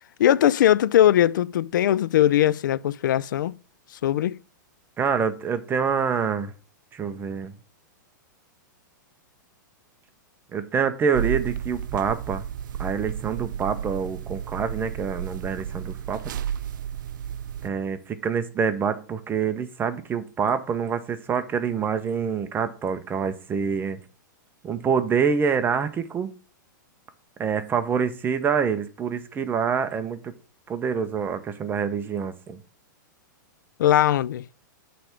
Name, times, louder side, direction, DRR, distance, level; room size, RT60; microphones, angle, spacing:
voice 1, 0.2-3.5 4.0-4.4 33.8-34.4, left 12 dB, 70° left, 0.4 m, -20 dB
voice 2, 5.0-6.5 6.9-7.5 10.5-12.5 12.8-16.3 17.6-24.0 24.6-26.3 27.4-30.3 30.7-32.6, right 6 dB, 20° right, 0.8 m, -26 dB
sound 1, 11.1-17.7, right 9 dB, 75° right, 0.4 m, -32 dB
7.6 x 3.4 x 5.7 m
hypercardioid pair, 120°, 11 cm